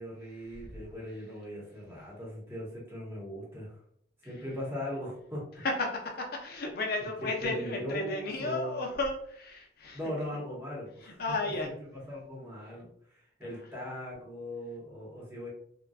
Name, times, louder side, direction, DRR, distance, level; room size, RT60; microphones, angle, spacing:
voice 1, 0.0-3.8 4.2-5.4 7.2-8.9 9.9-11.2 12.1-15.5, equal, 15° right, -5 dB, 1.0 m, -39 dB
voice 2, 5.6-10.0 11.0-11.7 13.4-13.5, left 2 dB, 55° left, 1 dB, 0.6 m, -34 dB
3.9 x 2.2 x 2.3 m, 0.64 s
head